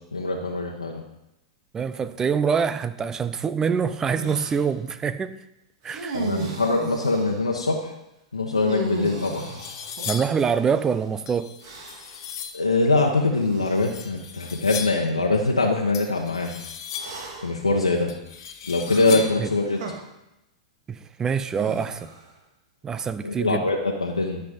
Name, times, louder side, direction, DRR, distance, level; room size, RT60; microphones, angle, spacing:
voice 1, 0.1-1.0 6.1-7.9 8.3-9.5 12.5-16.5 17.4-18.1 18.7-19.8 23.2-24.4, left 3 dB, 90° left, 0 dB, 1.1 m, -23 dB
voice 2, 1.7-5.4 5.8-6.2 10.1-11.5 19.4-19.5 20.9-22.1 22.8-23.7, right 6 dB, 20° right, 13 dB, 0.6 m, -25 dB
sound 1, 4.2-4.6 5.8-7.4 8.5-10.8 11.6-12.2 13.3-13.8 14.7-14.8 16.9-17.6 18.9-19.9 21.5-22.3, right 3 dB, 55° right, 2.2 m, -35 dB
sound 2, 9.0-10.4 11.3-12.7 13.7-15.1 15.9-17.3 18.1-19.5, left 7 dB, 60° left, 1.5 m, -37 dB
12.5 x 5.9 x 5.2 m, 0.90 s
hypercardioid pair, 105°, 3 cm